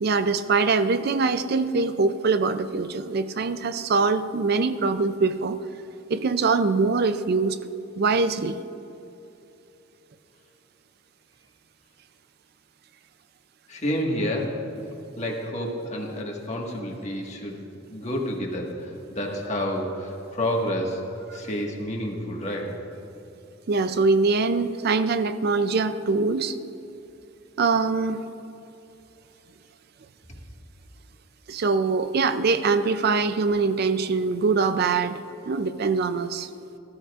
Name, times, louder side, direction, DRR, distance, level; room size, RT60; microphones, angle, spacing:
voice 1, 0.0-5.6 6.1-7.6 8.0-8.6 23.7-26.6 27.6-28.2 31.5-36.5, right 4 dB, 50° right, 11 dB, 0.4 m, -23 dB
voice 2, 13.7-14.6 15.2-17.6 17.9-21.0 21.3-22.8, equal, 35° left, 0 dB, 1.6 m, -29 dB
19.0 x 13.5 x 2.5 m, 2.9 s
head